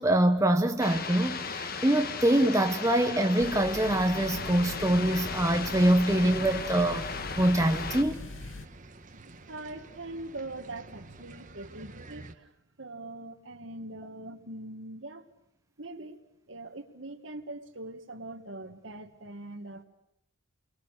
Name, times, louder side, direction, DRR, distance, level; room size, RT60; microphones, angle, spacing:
voice 1, 0.0-7.1 7.4-8.2, right 1 dB, 15° right, 1.0 m, -24 dB
sound 1, 0.8-8.0, left 5 dB, 45° left, 1.4 m, -36 dB
sound 2, 3.4-8.7, left 3 dB, 70° left, 0.9 m, -42 dB
sound 3, 4.3-12.3, right 2 dB, 40° right, 1.4 m, -47 dB
voice 2, 9.1-12.5 12.8-15.3 15.8-16.2 16.5-19.8, right 2 dB, 65° right, 1.9 m, -42 dB
30.0 x 23.0 x 6.7 m
head